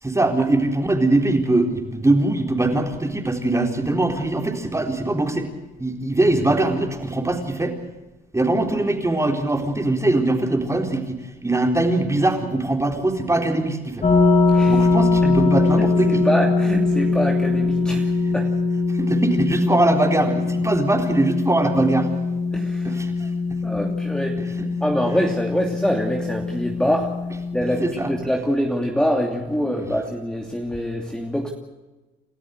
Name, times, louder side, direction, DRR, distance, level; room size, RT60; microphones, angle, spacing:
voice 1, 0.0-5.5 5.8-7.8 8.3-11.2 11.4-14.1 14.7-16.3 18.0-18.1 18.9-22.1 22.8-23.3 24.4-24.7 25.1-25.2 27.8-28.1 29.7-29.9, right 2 dB, 15° right, 4 dB, 3.9 m, -22 dB
sound 1, 14.0-28.1, left 3 dB, 35° left, 7.2 m, -22 dB
voice 2, 15.8-18.5 22.5-22.9 23.6-24.4 24.8-27.1 27.5-31.5, equal, 5° left, 1 dB, 2.7 m, -24 dB
29.5 x 13.5 x 8.1 m, 1.1 s
cardioid pair, 90°, 20 cm